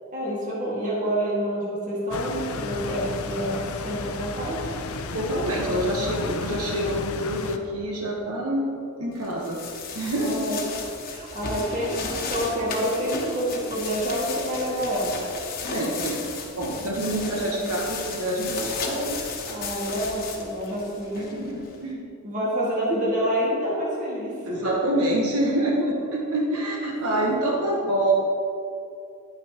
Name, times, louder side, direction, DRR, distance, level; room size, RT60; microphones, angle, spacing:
voice 1, 0.1-4.6 10.2-10.6 11.1-15.2 17.1-17.7 19.5-21.5 22.2-24.6 26.4-26.5 27.0-27.5, equal, 35° right, -6 dB, 1.9 m, -28 dB
sound 1, 2.1-7.6, left 3 dB, 75° left, 0.6 m, -33 dB
voice 2, 5.1-8.7 9.0-9.6 9.9-10.5 15.7-16.3 16.5-19.2 21.2-22.0 24.4-28.1, right 1 dB, 80° right, -2 dB, 1.1 m, -26 dB
sound 2, 9.2-21.8, left 4 dB, 40° left, 1.1 m, -35 dB
10.5 x 9.0 x 2.9 m, 2.6 s
head